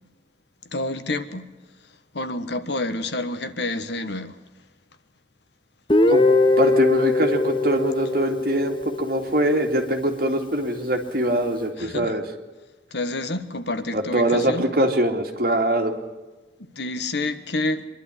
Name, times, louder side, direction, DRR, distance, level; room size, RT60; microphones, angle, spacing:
voice 1, 0.7-1.5 1.8-4.4 11.8-12.2 12.9-14.7 16.7-17.9, left 2 dB, 75° left, 1.4 m, -28 dB
Guitar, 5.9-9.7, left 2 dB, 25° left, 0.8 m, -21 dB
voice 2, 6.1-12.2 13.9-16.0, right 1 dB, 55° right, 2.5 m, -23 dB
25.0 x 12.0 x 9.9 m
head